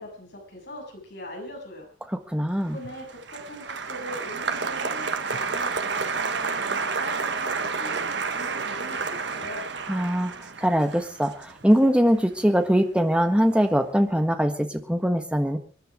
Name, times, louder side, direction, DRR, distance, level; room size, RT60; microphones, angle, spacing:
voice 1, 0.0-1.9 2.7-9.7, left 1 dB, 55° left, 0 dB, 7.4 m, -41 dB
voice 2, 2.1-2.8 9.9-15.6, equal, 5° right, 6 dB, 1.4 m, -22 dB
Applause, 2.7-13.1 13.4-14.0, right 4 dB, 60° right, 1.3 m, -30 dB
24.5 x 10.5 x 5.0 m, 0.40 s
head